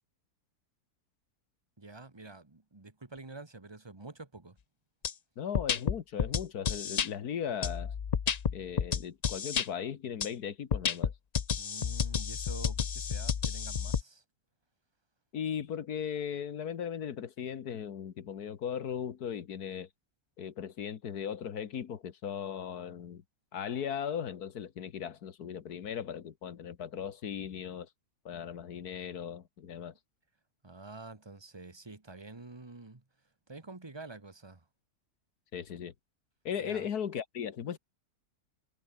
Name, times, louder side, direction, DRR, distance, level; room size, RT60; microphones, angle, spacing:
voice 1, 1.8-4.6 11.6-14.2 30.6-33.0 33.5-34.6 36.6-36.8, right 3 dB, 15° right, 1.7 m, -48 dB
sound 1, 5.0-5.1 5.5-7.1 7.6-9.7 10.2-10.3 10.7-14.0, left 7 dB, 50° left, 0.5 m, -31 dB
voice 2, 5.4-7.9 8.5-11.1 15.3-19.9 20.4-23.2 23.5-27.9 28.3-29.9 35.5-35.9 36.5-37.8, left 8 dB, 90° left, 1.8 m, -37 dB
omnidirectional pair, 1.6 m